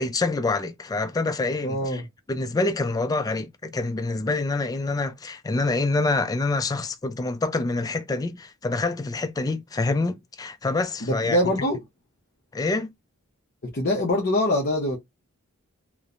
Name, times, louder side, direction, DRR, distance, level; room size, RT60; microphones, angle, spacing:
voice 1, 0.0-2.0 2.3-11.4 12.5-12.9, left 3 dB, 15° left, 0.3 m, -26 dB
voice 2, 1.6-2.0 11.0-11.8 13.7-15.0, left 1 dB, 45° left, 0.7 m, -23 dB
3.0 x 2.0 x 2.4 m
head